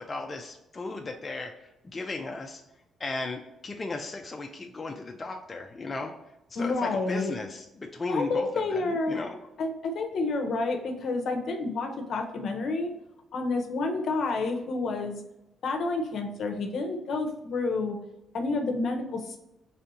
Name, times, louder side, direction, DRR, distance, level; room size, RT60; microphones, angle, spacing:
voice 1, 0.0-1.5 1.8-2.6 3.0-6.1 6.5-9.4, left 3 dB, 30° left, 2 dB, 0.4 m, -35 dB
voice 2, 6.6-7.3 8.1-9.2 9.6-12.9 13.3-15.2 15.6-18.0 18.3-19.4, left 3 dB, 65° left, 4 dB, 0.7 m, -29 dB
4.3 x 3.4 x 2.7 m, 0.91 s
cardioid pair, 90°, 0 cm